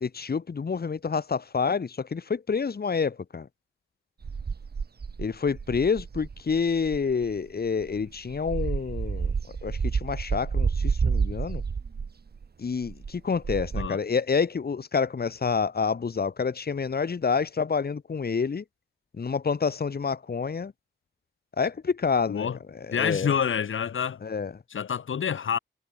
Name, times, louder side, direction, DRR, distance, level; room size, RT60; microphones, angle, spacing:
voice 1, 0.0-3.5 5.2-9.3 9.6-11.6 12.6-18.6 19.1-20.7 21.6-22.5 22.9-23.3 24.2-24.5, left 5 dB, 50° left, 2.5 m, -28 dB
sound 1, 4.2-7.3 7.8-12.5 12.8-13.9, right 5 dB, 55° right, 2.0 m, -29 dB
voice 2, 22.3-22.6 22.9-24.2 24.7-25.6, left 7 dB, 90° left, 2.4 m, -27 dB
wide cardioid pair, 115°, 20 cm